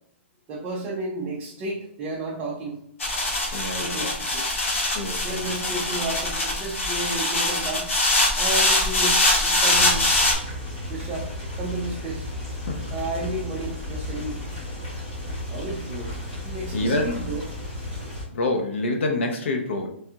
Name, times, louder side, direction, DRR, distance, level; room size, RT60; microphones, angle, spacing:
voice 1, 0.5-2.8 3.8-4.5 5.2-7.9 8.4-10.2 10.9-11.3 11.6-12.3 12.9-14.4 15.5-16.2 16.4-17.4, right 2 dB, 20° right, -4 dB, 0.4 m, -32 dB
sound 1, 3.0-10.3, left 2 dB, 85° left, 1.2 m, -23 dB
voice 2, 3.5-4.1 4.9-5.4 12.6-12.9 16.7-17.1 18.3-19.9, left 2 dB, 65° left, 4 dB, 0.7 m, -26 dB
sound 2, 9.7-18.2, left 1 dB, 30° left, 1.3 m, -34 dB
3.3 x 2.3 x 2.7 m, 0.69 s
hypercardioid pair, 170°, 7 cm